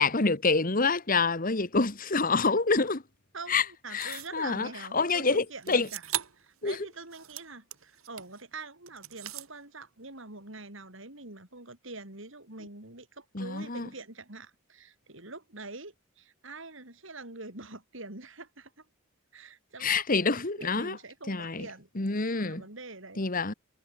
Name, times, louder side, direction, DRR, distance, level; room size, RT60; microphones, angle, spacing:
voice 1, 0.0-3.0 3.5-3.6 3.9-5.9 6.6-6.9 13.3-13.9 19.8-21.0 21.3-21.7 21.9-22.6 23.2-23.5, left 4 dB, 40° left, 1.6 m, -27 dB
voice 2, 3.3-6.0 6.4-18.8 19.3-20.0 20.6-21.9 22.4-23.2, right 3 dB, 65° right, 4.9 m, -45 dB
sound 1, 4.0-4.4 5.6-6.5 6.9-8.4 8.9-9.5, right 11 dB, 90° right, 5.1 m, -38 dB
head